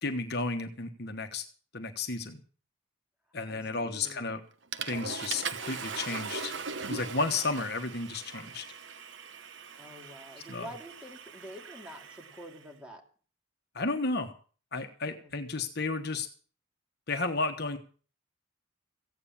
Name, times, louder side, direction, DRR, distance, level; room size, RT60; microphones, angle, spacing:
voice 1, 0.0-1.4 1.7-2.4 3.3-4.4 4.9-6.6 6.9-8.6 10.5-10.7 13.7-14.3 14.7-16.3 17.1-17.8, left 3 dB, 50° left, 6 dB, 1.2 m, -32 dB
voice 2, 3.5-4.3 9.8-13.0 15.0-15.3, equal, 5° right, 1 dB, 2.8 m, -47 dB
Water / Toilet flush, 4.0-4.3 4.7-12.6, right 5 dB, 60° right, 1.1 m, -40 dB
15.5 x 9.4 x 7.2 m, 0.41 s
head